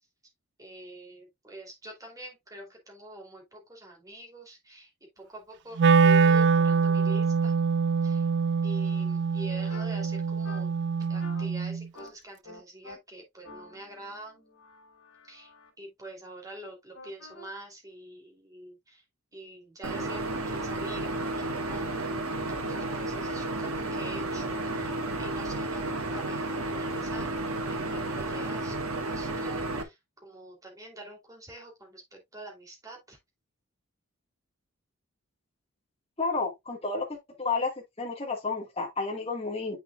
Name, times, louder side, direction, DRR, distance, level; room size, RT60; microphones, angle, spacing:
voice 1, 0.6-4.9 5.2-7.5 8.0-8.3 8.6-10.7 11.1-14.4 15.3-15.5 15.8-19.0 19.3-21.9 22.2-27.4 27.7-29.9 30.2-33.2, right 1 dB, 15° right, 2.8 m, -46 dB
Wind instrument woodwind instrument, 5.8-11.9, right 5 dB, 55° right, 0.3 m, -24 dB
sound 1, 9.7-9.9 10.4-10.6 11.2-11.5 11.9-12.1 12.4-13.0 13.4-15.7 16.9-17.5, left 2 dB, 75° left, 3.5 m, -48 dB
sound 2, 19.8-29.8, right 2 dB, 80° right, 1.5 m, -32 dB
voice 2, 36.2-37.7 38.0-39.8, left 4 dB, 30° left, 1.6 m, -31 dB
8.0 x 6.3 x 2.3 m
head